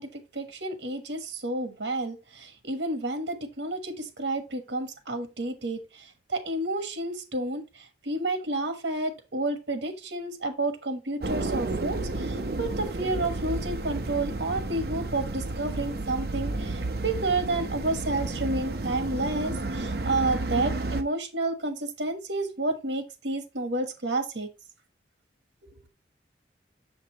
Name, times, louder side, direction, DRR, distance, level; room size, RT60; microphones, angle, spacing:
voice 1, 0.0-24.5, right 2 dB, 80° right, 1.3 m, -30 dB
sound 1, 11.2-21.0, right 2 dB, 60° right, 0.8 m, -31 dB
6.9 x 5.3 x 2.9 m
head